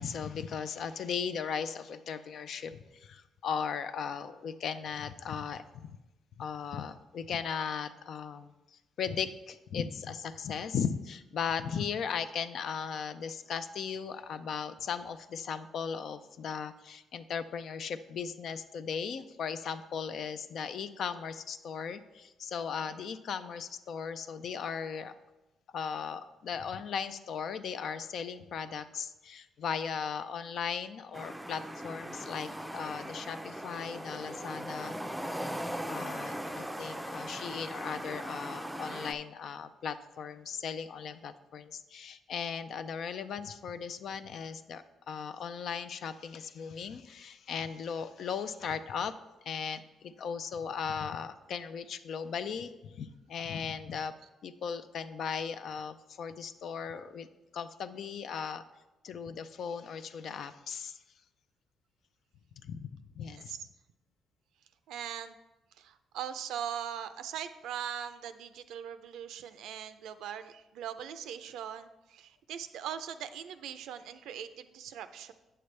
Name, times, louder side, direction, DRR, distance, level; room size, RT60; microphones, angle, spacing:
voice 1, 0.0-5.9 6.4-25.1 25.7-35.0 35.9-49.1 49.4-54.1 54.4-57.3 57.5-58.6 59.0-61.0 62.6-63.5, left 6 dB, 65° left, 11 dB, 0.4 m, -37 dB
sound 1, 31.1-39.1, equal, 5° right, 0.5 m, -39 dB
voice 2, 63.3-63.6 64.9-65.4 65.8-75.3, right 9 dB, 85° right, 11 dB, 0.4 m, -41 dB
8.7 x 6.7 x 3.2 m, 1.0 s
cardioid pair, 90°, 0 cm